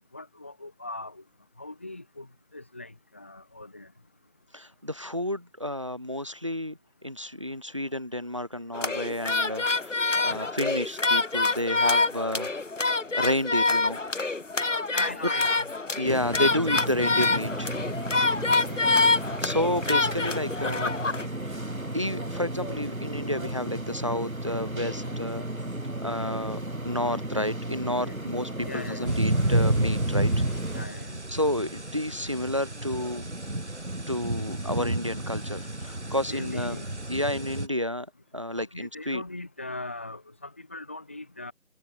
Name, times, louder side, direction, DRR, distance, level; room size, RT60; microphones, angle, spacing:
voice 1, 0.1-1.2 1.6-3.9 14.9-15.7 18.5-19.1 24.9-25.2 26.0-26.1 28.0-28.1 28.6-29.1 30.7-31.2 36.2-36.8 38.6-41.5, left 2 dB, 10° left, 3.4 m, -40 dB
voice 2, 4.5-12.5 13.1-14.0 16.0-17.7 19.4-20.9 21.5-21.6 21.9-25.4 26.0-30.3 31.3-33.3 34.1-36.8 37.1-38.1 38.3-39.2, left 1 dB, 20° right, 1.8 m, -30 dB
sound 1, 8.7-21.3, left 3 dB, 55° left, 0.9 m, -26 dB
sound 2, 16.0-30.9, right 1 dB, 70° right, 5.6 m, -34 dB
sound 3, 29.0-37.7, right 1 dB, 50° right, 4.4 m, -30 dB
figure-of-eight pair, 175°, 43 cm